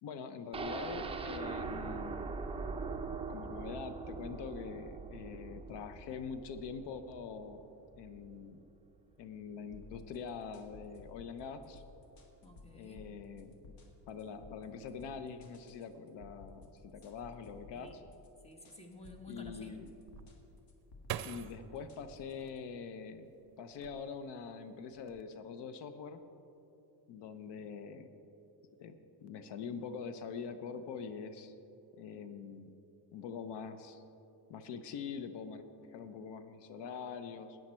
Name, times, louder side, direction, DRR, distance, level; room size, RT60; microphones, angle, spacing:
voice 1, 0.0-2.2 3.3-7.7 8.0-8.6 9.2-11.8 12.7-13.7 14.1-18.0 19.3-19.9 21.2-23.3 23.6-26.2 27.1-28.1 28.8-28.9 29.2-31.5 32.0-32.7 33.1-34.0 34.5-37.6, left 6 dB, 85° left, 10 dB, 0.8 m, -44 dB
sound 1, 0.5-8.4 8.8-8.9 9.2-9.3, right 4 dB, 15° right, 0.5 m, -42 dB
sound 2, 9.7-22.6, left 3 dB, 60° left, 1.6 m, -56 dB
voice 2, 12.4-13.0 17.7-17.9 18.4-19.7, left 1 dB, 15° left, 3 dB, 1.3 m, -52 dB
sound 3, 20.1-23.2 23.7-24.4 24.8-25.2, right 11 dB, 65° right, 0.6 m, -45 dB
14.0 x 9.3 x 4.4 m, 2.9 s
cardioid pair, 135°, 40 cm